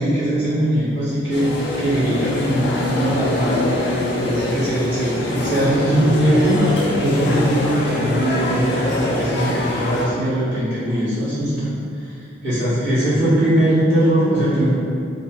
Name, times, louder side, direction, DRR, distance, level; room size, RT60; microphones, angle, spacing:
voice 1, 0.0-6.6 7.0-11.7 12.0-12.1 12.4-14.7, right 1 dB, 65° right, -13 dB, 1.0 m, -20 dB
sound 1, 1.3-10.1, left 1 dB, 60° left, 0.3 m, -24 dB
2.6 x 2.1 x 2.7 m, 2.5 s
head